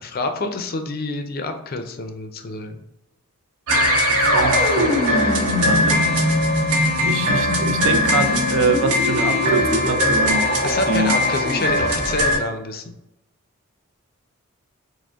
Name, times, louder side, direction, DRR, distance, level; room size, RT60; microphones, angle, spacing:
voice 1, 0.0-2.8 10.6-12.9, left 3 dB, 45° left, 6 dB, 0.4 m, -28 dB
sound 1, 3.7-12.4, left 1 dB, 85° right, 0.9 m, -19 dB
voice 2, 4.1-5.0 5.6-6.1 7.0-10.5 10.9-11.1, right 4 dB, 60° right, 7 dB, 0.5 m, -24 dB
5.0 x 2.1 x 3.5 m, 0.85 s
head